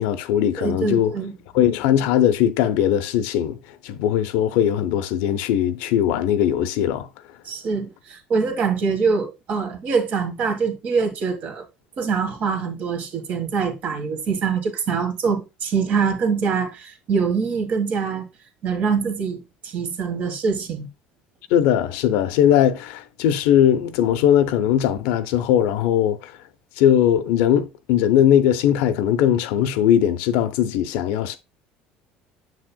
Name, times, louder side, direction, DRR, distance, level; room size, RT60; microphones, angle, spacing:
voice 1, 0.0-1.1 1.5-3.6 3.8-7.1 21.5-26.3 26.8-31.4, left 10 dB, 80° left, 0.7 m, -19 dB
voice 2, 0.6-1.3 7.4-11.6 12.0-18.3 18.6-20.9, right 5 dB, 50° right, 1.5 m, -24 dB
7.1 x 6.4 x 2.2 m
cardioid pair, 125°, 3 cm